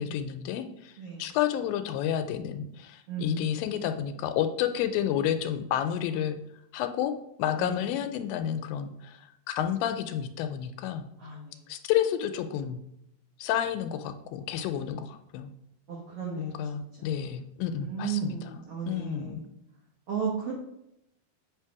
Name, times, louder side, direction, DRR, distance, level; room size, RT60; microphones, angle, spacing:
voice 1, 0.0-0.9 1.2-6.4 6.7-7.1 7.4-11.1 11.7-12.8 13.4-15.5 16.4-18.6 18.9-19.4, left 10 dB, 85° left, 9 dB, 2.2 m, -30 dB
voice 2, 3.1-3.5 7.6-7.8 11.2-11.6 15.9-16.6 17.0-17.1 17.8-19.4 20.1-20.5, right 6 dB, 75° right, -3 dB, 1.3 m, -34 dB
8.1 x 3.2 x 4.7 m, 0.81 s
omnidirectional pair, 4.2 m